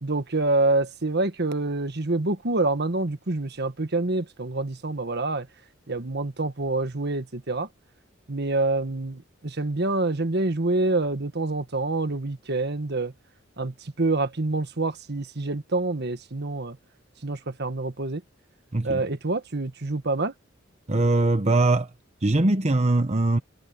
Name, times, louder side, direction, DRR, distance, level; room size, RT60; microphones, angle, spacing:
voice 1, 0.0-5.5 5.9-7.7 8.3-13.1 13.6-16.8 17.2-18.2 18.8-20.3, right 2 dB, 55° right, 1.5 m, -26 dB
voice 2, 20.9-21.9 22.2-23.4, right 2 dB, 35° right, 1.0 m, -21 dB
head